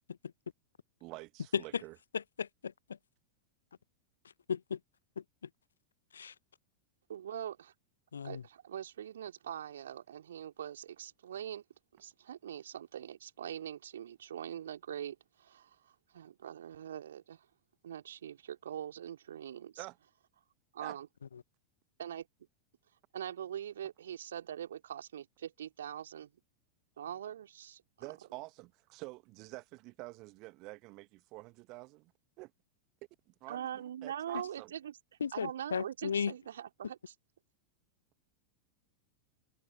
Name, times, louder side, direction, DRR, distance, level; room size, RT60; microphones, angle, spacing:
voice 1, 1.0-1.9 19.8-20.0 20.8-21.0 28.0-32.1 32.4-32.5 33.4-34.7, right 23 dB, 40° right, 1.5 m, -48 dB
voice 2, 2.1-2.7 4.5-4.8 5.2-5.3 6.1-6.3 8.1-8.4 35.2-36.3, left 7 dB, 70° left, 0.8 m, -35 dB
voice 3, 7.1-7.7 8.2-11.6 12.0-15.8 16.1-17.4 17.8-19.8 20.7-21.1 22.0-22.3 23.1-26.3 27.0-27.8 33.5-35.0 35.3-37.1, right 10 dB, 65° right, 3.2 m, -43 dB
figure-of-eight pair, 90°, 0 cm